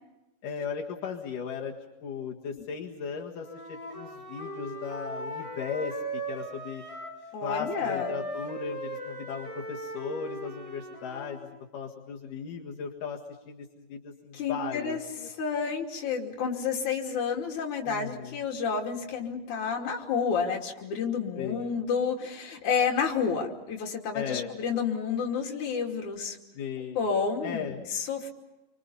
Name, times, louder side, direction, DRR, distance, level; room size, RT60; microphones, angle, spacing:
voice 1, 0.4-1.7 2.0-6.8 7.4-13.2 13.5-15.3 17.8-18.4 21.4-21.7 24.1-24.5 26.6-27.0 27.4-27.8, left 6 dB, 85° left, -2 dB, 3.5 m, -37 dB
Wind instrument woodwind instrument, 3.4-7.2 7.5-11.5, right 1 dB, 10° left, 6.4 m, -38 dB
voice 2, 7.3-8.1 14.3-15.0 15.3-26.4 27.0-28.3, left 6 dB, 70° left, 1 dB, 4.2 m, -30 dB
29.0 x 25.5 x 5.6 m, 1.0 s
omnidirectional pair, 3.6 m